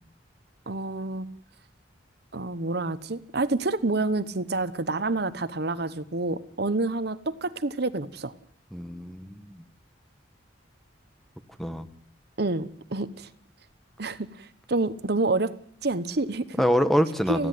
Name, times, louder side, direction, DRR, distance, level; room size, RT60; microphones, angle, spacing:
voice 1, 0.7-1.3 2.3-8.3 12.4-13.3 14.0-15.5 15.8-16.4 17.3-17.5, right 2 dB, 60° right, 14 dB, 1.0 m, -28 dB
voice 2, 8.7-9.6 11.6-11.9 16.6-17.5, equal, ahead, 10 dB, 1.1 m, -25 dB
30.0 x 10.5 x 9.3 m, 0.64 s
head